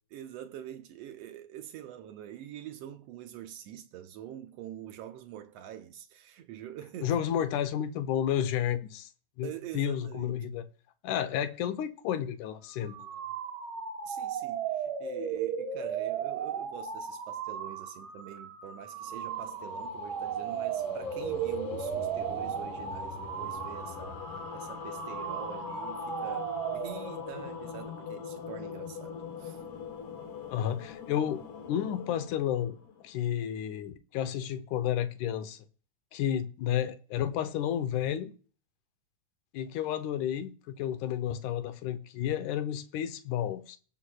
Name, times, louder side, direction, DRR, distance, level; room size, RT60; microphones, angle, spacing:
voice 1, 0.1-7.2 9.4-10.5 14.1-24.2 24.5-29.6, right 11 dB, 80° right, 1.4 m, -45 dB
voice 2, 7.0-9.1 9.4-9.5 9.7-10.7 11.0-13.1 30.5-31.4 31.7-32.8 33.0-35.6 36.1-38.3 39.5-43.8, left 10 dB, 85° left, 2.2 m, -31 dB
sound 1, 12.7-27.4, right 7 dB, 65° right, 1.3 m, -36 dB
sound 2, 18.9-33.4, left 6 dB, 65° left, 1.5 m, -42 dB
19.0 x 7.1 x 2.3 m
omnidirectional pair, 3.6 m